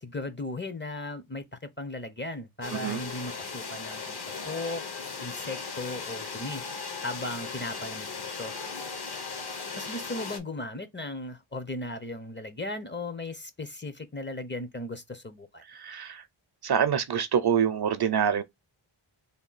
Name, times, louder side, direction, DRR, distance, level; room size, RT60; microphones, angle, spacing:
voice 1, 0.0-4.2 4.4-4.9 5.2-6.6 7.0-8.5 9.8-15.6, left 2 dB, 25° left, 0.5 m, -37 dB
sound 1, 2.6-10.4, left 4 dB, 50° left, 0.9 m, -37 dB
voice 2, 2.7-3.0 15.7-16.2 16.6-18.4, right 8 dB, 55° right, 0.5 m, -26 dB
3.4 x 2.3 x 3.9 m
wide cardioid pair, 110°, 49 cm